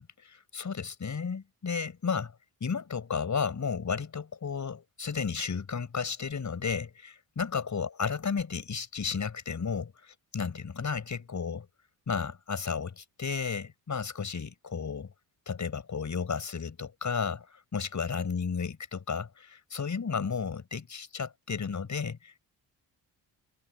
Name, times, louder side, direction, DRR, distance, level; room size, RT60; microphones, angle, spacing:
voice 1, 0.0-2.3 2.6-11.7 12.1-15.1 15.5-17.5 17.7-22.4, left 5 dB, 45° left, 6.2 m, -33 dB
cardioid pair, 70°, 41 cm